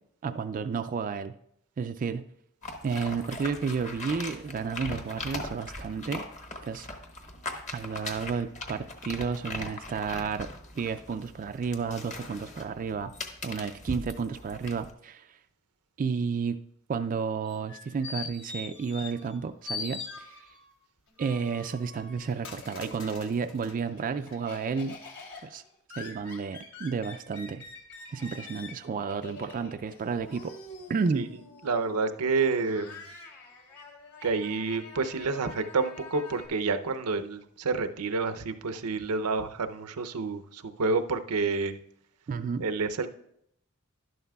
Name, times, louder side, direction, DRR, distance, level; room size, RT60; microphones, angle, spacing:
voice 1, 0.2-1.3 1.8-2.3 2.8-6.2 6.6-6.9 7.7-10.5 10.8-13.1 13.4-15.4 16.0-16.6 16.9-20.5 21.2-25.0 25.4-25.6 25.9-27.7 28.1-30.5 30.9-31.3 42.3-42.7, right 5 dB, 35° right, 8 dB, 0.3 m, -32 dB
sound 1, 2.6-14.9, left 2 dB, 35° left, 1.0 m, -40 dB
sound 2, 17.5-19.4 19.6-20.7 21.2-23.8 24.3-24.4, left 4 dB, 60° left, 1.1 m, -41 dB
Laughter, 21.1-23.2 23.6-36.5, left 3 dB, 80° left, 2.8 m, -47 dB
voice 2, 31.6-33.0 34.2-41.8 42.6-43.1, right 4 dB, 85° right, 9 dB, 0.6 m, -29 dB
12.0 x 11.0 x 2.3 m, 0.74 s
head